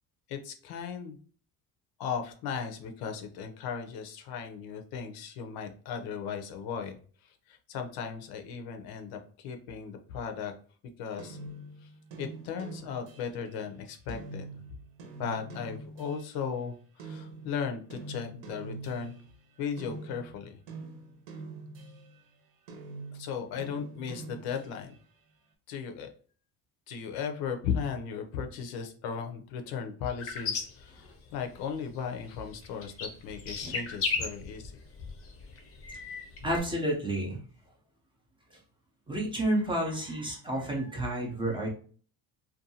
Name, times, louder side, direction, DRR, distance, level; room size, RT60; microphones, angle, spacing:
voice 1, 0.3-1.2 2.0-6.9 7.2-10.5 11.0-11.4 11.8-11.9 12.2-14.6 15.2-19.1 19.6-20.6 23.1-25.0 25.7-26.1 26.9-34.8, left 7 dB, 75° left, 5 dB, 0.6 m, -36 dB
sound 1, 11.2-16.5 17.0-22.3 22.7-25.1, right 2 dB, 60° right, 0.7 m, -45 dB
sound 2, 30.2-31.7 32.0-36.6, left 5 dB, 40° left, 0.6 m, -36 dB
voice 2, 36.4-37.4 39.1-41.7, right 1 dB, 15° right, -2 dB, 0.4 m, -30 dB
2.6 x 2.3 x 2.7 m, 0.42 s
cardioid pair, 160°, 37 cm